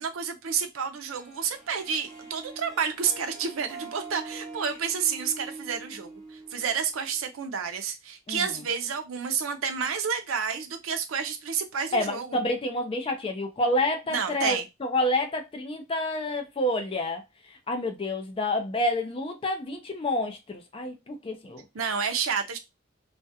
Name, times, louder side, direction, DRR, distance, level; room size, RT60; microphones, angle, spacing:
voice 1, 0.0-12.4 14.1-14.7 21.7-22.6, right 6 dB, 80° right, 0.5 m, -30 dB
Harp, 1.1-7.4, right 3 dB, ahead, 0.7 m, -44 dB
voice 2, 11.9-17.2 17.7-21.6, left 1 dB, 25° left, 0.4 m, -28 dB
2.3 x 2.1 x 2.6 m
head